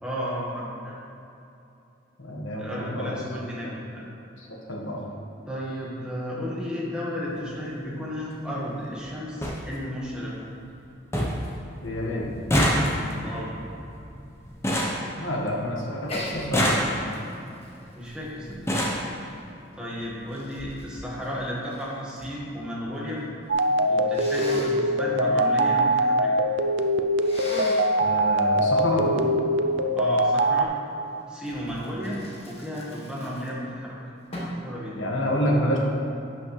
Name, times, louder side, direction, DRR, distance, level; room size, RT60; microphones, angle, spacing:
voice 1, 0.0-1.0 2.6-4.0 5.5-10.3 13.1-13.6 17.9-18.7 19.8-23.2 23.9-26.3 29.9-30.7 31.3-33.9 34.4-35.0, equal, 5° right, -6 dB, 1.5 m, -33 dB
voice 2, 2.2-3.2 4.5-5.0 11.8-12.3 15.2-17.0 28.0-29.3 35.0-35.8, equal, 80° left, -2 dB, 1.5 m, -28 dB
sound 1, 7.3-7.5 8.7-8.8 9.0-9.1 9.4-9.6 10.1-10.5 10.8-10.9 11.1-11.5 11.8-15.8 16.3-17.3 18.1-18.2 18.5-19.1 20.0-20.1 20.5-20.7 20.9-21.0, equal, 15° left, 0.9 m, -26 dB
Sneeze, 16.0-16.4 16.8-19.2 19.9-22.3 22.6-23.3 24.1-24.8 27.2-27.9 31.4-33.7 34.3-34.6, left 1 dB, 30° left, 1.3 m, -39 dB
sound 2, 23.5-30.7, right 1 dB, 75° right, 0.5 m, -23 dB
11.0 x 6.3 x 3.3 m, 2.8 s
head